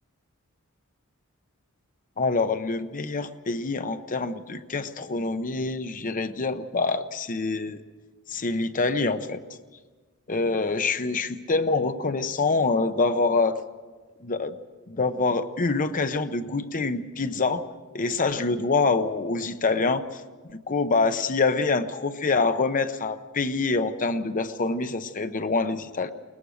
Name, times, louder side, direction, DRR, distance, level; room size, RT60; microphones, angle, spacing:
voice 1, 2.2-7.8 8.3-9.4 10.3-13.6 14.2-14.6 14.9-17.6 17.9-20.2 20.5-26.1, left 3 dB, 40° left, 10 dB, 0.8 m, -25 dB
22.0 x 20.0 x 6.4 m, 1.4 s
head